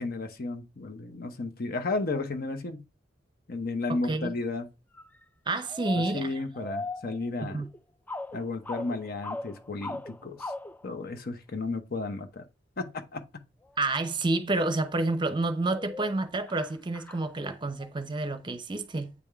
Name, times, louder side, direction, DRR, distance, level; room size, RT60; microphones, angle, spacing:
voice 1, 0.0-2.8 3.5-4.7 6.1-7.7 8.3-10.5 10.8-12.4 12.8-13.2, left 3 dB, 55° left, 0.9 m, -33 dB
voice 2, 3.9-4.3 5.5-6.3 7.4-7.7 13.8-19.1, right 2 dB, 25° right, 0.7 m, -29 dB
sound 1, 5.0-5.2 5.7-7.8 8.1-10.8 14.0-14.1 15.0-15.3 15.7-17.9, left 2 dB, 10° left, 0.3 m, -39 dB
8.3 x 3.5 x 3.4 m
head